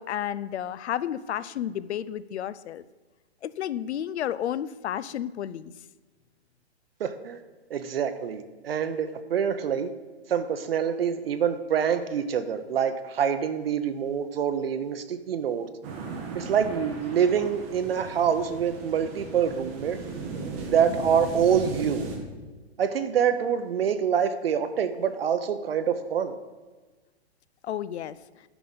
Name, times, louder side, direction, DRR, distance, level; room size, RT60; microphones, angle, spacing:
voice 1, 0.0-2.8 3.4-5.7 27.6-28.2, left 10 dB, 80° left, 18 dB, 0.5 m, -31 dB
voice 2, 7.0-7.4 7.7-9.9 10.3-15.7 16.3-20.0 20.7-22.1 22.8-26.3, right 8 dB, 60° right, 9 dB, 0.7 m, -26 dB
sound 1, 15.8-22.2, right 4 dB, 10° right, 0.5 m, -37 dB
11.0 x 5.9 x 3.9 m, 1.3 s
hypercardioid pair, 165°, 33 cm